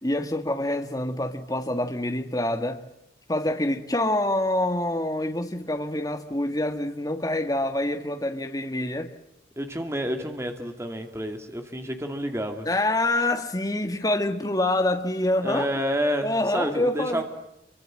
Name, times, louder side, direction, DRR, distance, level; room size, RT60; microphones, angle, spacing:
voice 1, 0.0-2.8 3.3-9.1 12.6-15.7 16.2-17.2, left 1 dB, 20° left, 1.8 m, -26 dB
voice 2, 9.6-12.7 15.4-17.2, equal, 15° right, 2.5 m, -29 dB
28.5 x 24.5 x 7.6 m
head